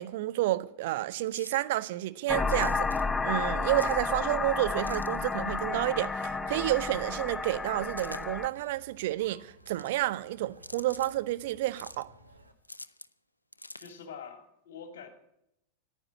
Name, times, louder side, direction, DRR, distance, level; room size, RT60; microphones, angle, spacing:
voice 1, 0.0-12.1, right 16 dB, 50° right, 0.6 m, -30 dB
sound 1, 1.3-1.8 2.4-3.0 3.7-4.1 4.8-5.4 6.5-6.9 7.9-8.5 9.5-10.1 10.6-11.1 11.7-12.0 12.7-13.1 13.5-14.1, left 2 dB, 85° left, 0.4 m, -47 dB
sound 2, 2.3-8.5, left 4 dB, 10° left, 0.4 m, -31 dB
Conversation, 3.4-12.5, right 1 dB, 85° right, 1.1 m, -55 dB
voice 2, 13.8-15.1, left 6 dB, 55° left, 2.5 m, -45 dB
10.0 x 9.6 x 8.5 m
figure-of-eight pair, 90°, 0 cm